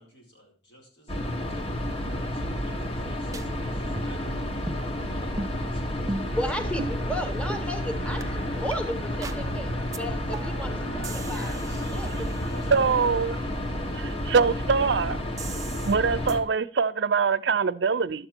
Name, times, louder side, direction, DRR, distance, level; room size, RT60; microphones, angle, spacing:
voice 1, 0.0-1.7 2.2-4.2 5.1-5.3 5.6-6.2 6.6-6.7 11.3-13.7, equal, 85° left, 4.5 m, -50 dB
sound 1, 1.1-16.4, left 1 dB, 35° left, 1.0 m, -31 dB
sound 2, 2.4-3.1 3.3-3.4 4.0-4.3 4.7-4.9 5.4-5.5 6.1-6.4 6.8-7.0 7.5-7.6 8.2-8.3 8.7-8.8 9.2-9.4 9.9-10.0 10.3-10.7 11.0-12.9 15.4-16.0 16.3-16.4, right 2 dB, 20° right, 0.5 m, -37 dB
sound 3, 6.2-13.3, right 1 dB, 55° left, 3.6 m, -40 dB
voice 2, 6.3-11.5 11.9-12.1, equal, 5° left, 0.9 m, -34 dB
voice 3, 12.7-13.4 13.9-15.2 15.8-18.3, right 5 dB, 80° right, 0.5 m, -23 dB
11.5 x 7.8 x 4.4 m
head